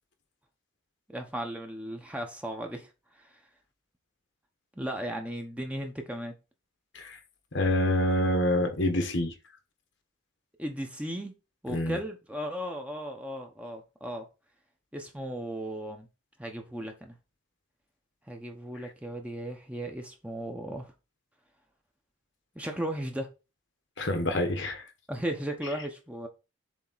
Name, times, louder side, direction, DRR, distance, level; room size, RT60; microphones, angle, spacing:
voice 1, 1.1-2.9 3.1-3.4 4.8-6.3 10.6-11.3 11.6-14.3 14.9-16.1 16.4-17.2 18.3-20.9 22.5-23.3 25.1-26.3, right 1 dB, 5° right, 0.9 m, -36 dB
voice 2, 7.5-9.3 11.7-12.0 24.0-24.8, left 1 dB, 60° left, 1.1 m, -26 dB
7.4 x 3.5 x 4.0 m
head